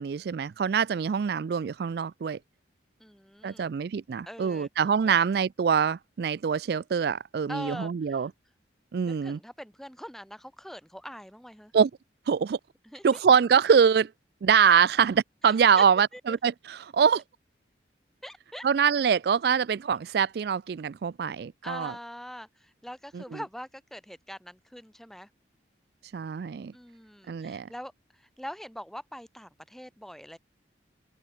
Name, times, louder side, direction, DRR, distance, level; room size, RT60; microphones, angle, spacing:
voice 1, 0.0-2.4 3.4-8.3 8.9-9.4 11.7-11.9 12.3-12.6 13.0-14.1 14.4-17.2 18.6-21.9 23.1-23.4 26.1-26.7 27.3-27.7, right 7 dB, 55° right, 0.3 m, -24 dB
voice 2, 3.0-3.7 4.3-4.7 5.1-5.2 7.5-8.2 9.1-11.7 12.8-13.2 15.8-15.9 16.1-16.4 18.2-18.7 21.6-25.3 26.7-27.9 28.2-30.4, equal, ahead, 2.6 m, -42 dB
open air
head